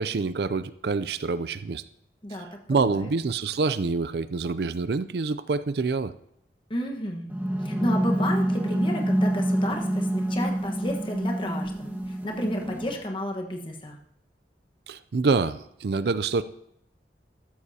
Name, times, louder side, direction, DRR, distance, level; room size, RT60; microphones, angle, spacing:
voice 1, 0.0-1.8 2.7-6.1 14.9-16.4, right 4 dB, 65° right, 14 dB, 0.4 m, -26 dB
voice 2, 2.2-3.1 6.7-7.3 7.6-14.0, left 1 dB, 30° left, 2 dB, 1.3 m, -32 dB
sound 1, 7.3-13.0, right 1 dB, 10° right, 1.4 m, -27 dB
14.5 x 13.0 x 2.8 m, 0.77 s
head